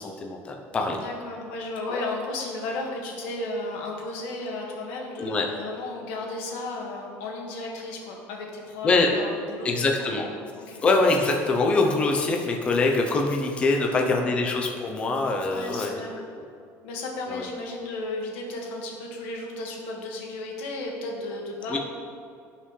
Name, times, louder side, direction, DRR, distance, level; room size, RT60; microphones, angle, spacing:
voice 1, 0.0-1.0 1.9-2.0 5.2-5.4 8.8-9.1 9.6-10.3 10.8-15.9 16.4-16.5 17.3-17.4 21.7-21.8, left 3 dB, 20° left, 2 dB, 0.8 m, -24 dB
voice 2, 1.0-9.7 10.0-10.1 10.6-10.8 13.7-14.3 15.5-16.2 16.8-21.8, left 2 dB, 85° left, -1 dB, 1.9 m, -34 dB
16.0 x 5.7 x 3.3 m, 2.4 s
cardioid pair, 175°, 6 cm